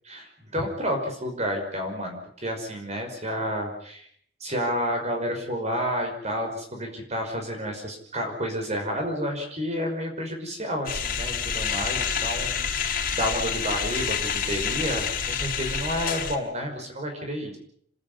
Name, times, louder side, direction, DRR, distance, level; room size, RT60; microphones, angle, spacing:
voice 1, 0.1-4.1 4.4-17.6, equal, 40° right, 3 dB, 5.7 m, -30 dB
sound 1, 10.9-16.4, left 7 dB, 50° left, 4.7 m, -28 dB
28.5 x 13.0 x 9.6 m, 0.64 s
head